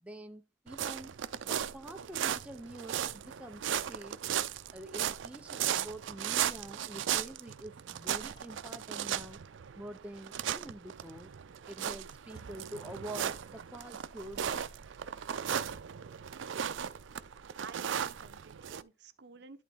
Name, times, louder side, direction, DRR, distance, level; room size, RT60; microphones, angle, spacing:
voice 1, 0.0-4.2 4.7-9.4 9.8-11.3 11.7-14.6, right 1 dB, 5° right, 0.6 m, -46 dB
sound 1, 0.7-18.8, right 9 dB, 85° right, 0.5 m, -36 dB
sound 2, 4.3-4.6 6.3-6.6 8.3-8.5 10.3-10.5 12.3-12.5 14.3-14.4, equal, 25° left, 2.9 m, -62 dB
voice 2, 17.6-19.6, right 5 dB, 60° right, 0.8 m, -52 dB
11.0 x 4.0 x 3.5 m
head